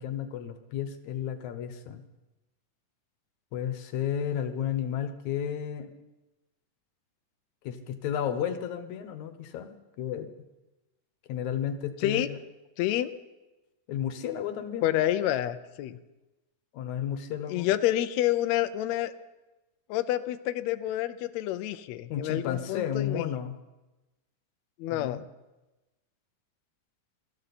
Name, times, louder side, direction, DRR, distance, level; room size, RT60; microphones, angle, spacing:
voice 1, 0.0-2.0 3.5-5.9 7.6-10.3 11.3-12.4 13.9-15.0 16.7-17.8 22.1-23.6 24.9-25.2, left 9 dB, 65° left, 9 dB, 2.3 m, -33 dB
voice 2, 12.8-13.1 14.8-16.0 17.5-19.1 19.9-23.2 24.8-25.2, left 13 dB, 85° left, 11 dB, 1.5 m, -28 dB
23.5 x 14.0 x 4.2 m, 1.1 s
omnidirectional pair, 3.8 m